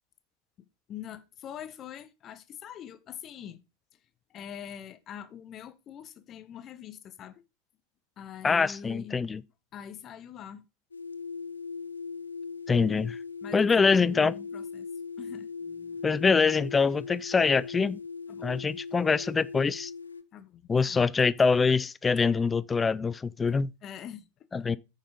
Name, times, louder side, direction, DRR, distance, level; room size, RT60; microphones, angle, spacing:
voice 1, 0.6-3.6 4.3-7.4 8.2-9.2 9.7-10.6 13.4-14.9 15.2-16.1 18.3-18.5 20.3-21.1 23.8-24.3, left 9 dB, 30° left, 1.1 m, -44 dB
voice 2, 8.4-9.4 12.7-13.2 13.5-14.4 16.0-18.0 18.4-19.9 20.7-23.7 24.5-24.8, left 5 dB, 15° left, 0.4 m, -24 dB
sound 1, 10.9-20.2, left 5 dB, 75° left, 0.8 m, -39 dB
9.2 x 6.6 x 5.1 m
figure-of-eight pair, 90°, 0 cm